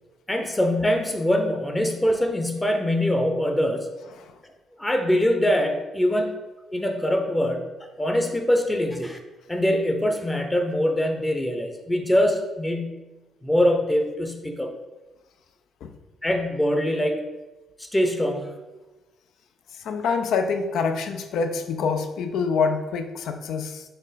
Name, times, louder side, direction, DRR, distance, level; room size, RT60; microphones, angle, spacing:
voice 1, 0.3-3.9 4.8-6.3 6.7-7.7 8.0-9.2 9.5-13.0 13.4-14.7 16.2-17.2 17.8-18.5, left 1 dB, 15° left, 4 dB, 0.6 m, -23 dB
voice 2, 19.8-23.8, left 5 dB, 75° left, 7 dB, 0.4 m, -26 dB
4.3 x 3.1 x 4.1 m, 1.1 s
cardioid pair, 90°, 0 cm